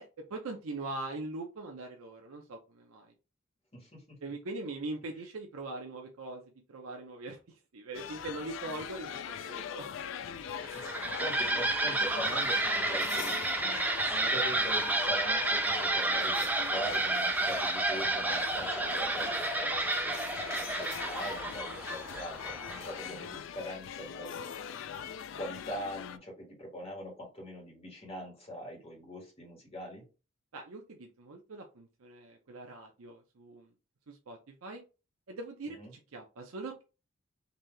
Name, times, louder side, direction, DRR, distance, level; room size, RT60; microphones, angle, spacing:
voice 1, 0.0-3.1 4.2-6.4 6.7-7.4 7.7-9.9 30.5-33.7 34.1-34.8 35.3-36.8, right 2 dB, 85° right, 2 dB, 0.6 m, -42 dB
voice 2, 3.7-4.2 10.6-30.0 35.7-35.9, equal, 25° left, -2 dB, 1.5 m, -43 dB
sound 1, 7.9-26.2, left 8 dB, 60° left, 0.3 m, -41 dB
sound 2, 10.5-23.1, right 2 dB, 10° right, 0.4 m, -31 dB
4.0 x 2.7 x 3.2 m, 0.31 s
head